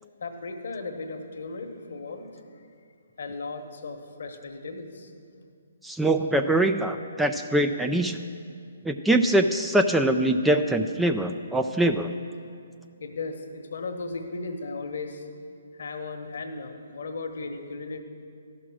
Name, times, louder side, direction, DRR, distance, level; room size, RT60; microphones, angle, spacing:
voice 1, 0.2-2.3 3.2-5.1 13.0-15.2 15.8-18.0, left 3 dB, 65° left, 5 dB, 1.1 m, -36 dB
voice 2, 5.8-8.2 8.8-12.1, right 1 dB, 5° right, 6 dB, 0.3 m, -23 dB
13.5 x 6.0 x 6.1 m, 2.3 s
hypercardioid pair, 140°, 0 cm